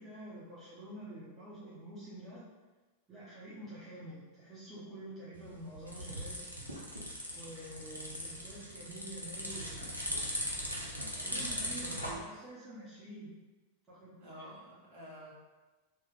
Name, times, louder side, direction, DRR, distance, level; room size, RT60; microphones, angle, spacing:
voice 1, 0.0-2.4 3.1-6.4 7.4-10.2 11.1-13.3 13.9-14.2, right 1 dB, 20° right, -9 dB, 0.8 m, -48 dB
sound 1, 5.3-12.1, equal, 90° right, 0.5 m, -39 dB
voice 2, 11.6-12.5 14.2-15.3, right 1 dB, 45° right, -7 dB, 1.2 m, -50 dB
3.0 x 2.3 x 3.4 m, 1.2 s
figure-of-eight pair, 90°, 0 cm